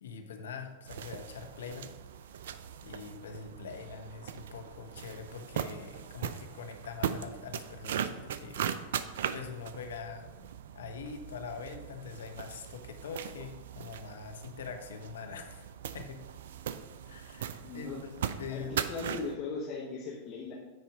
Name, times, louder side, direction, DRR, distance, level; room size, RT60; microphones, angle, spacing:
voice 1, 0.0-1.9 2.8-10.3 10.7-15.6 15.9-16.2 17.1-18.8, left 5 dB, 75° left, 6 dB, 0.9 m, -44 dB
sound 1, 0.9-19.4, right 9 dB, 70° right, 0.4 m, -39 dB
voice 2, 17.6-18.1 18.5-20.5, left 4 dB, 45° left, -3 dB, 1.2 m, -38 dB
9.6 x 4.3 x 4.9 m, 1.2 s
hypercardioid pair, 100°, 0 cm